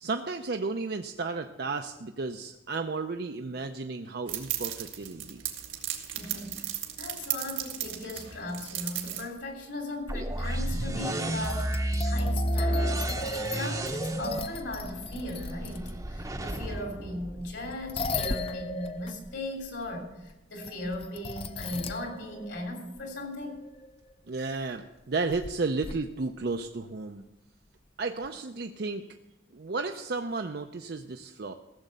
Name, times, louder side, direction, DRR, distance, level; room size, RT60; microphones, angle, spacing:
voice 1, 0.0-5.4 24.3-27.2 28.0-29.0 29.5-31.5, right 3 dB, 55° right, 5 dB, 0.5 m, -33 dB
sound 1, 4.3-9.2, right 11 dB, 85° right, 1.7 m, -35 dB
voice 2, 6.1-20.1 20.5-23.5, left 1 dB, 70° left, 2 dB, 3.3 m, -38 dB
sound 2, 9.4-9.5 10.4-10.5 11.4-15.9 17.3-24.1 25.3-25.5 25.8-26.2 28.2-28.3, left 2 dB, 30° left, 0.5 m, -37 dB
sound 3, 10.1-18.0, right 1 dB, 20° right, 0.8 m, -31 dB
15.5 x 7.4 x 6.7 m, 0.96 s
head